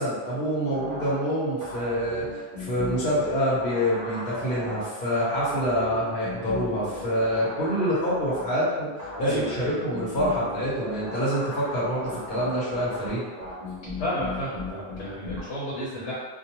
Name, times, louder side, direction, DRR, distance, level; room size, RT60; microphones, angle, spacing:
voice 1, 0.0-8.9 9.2-13.3, equal, 55° left, -9 dB, 1.1 m, -26 dB
sound 1, 0.7-15.4, left 1 dB, 45° right, 0.6 m, -37 dB
voice 2, 9.2-9.8 14.0-16.1, equal, 90° left, -8 dB, 1.1 m, -32 dB
2.4 x 2.2 x 2.9 m, 1.4 s
omnidirectional pair, 1.2 m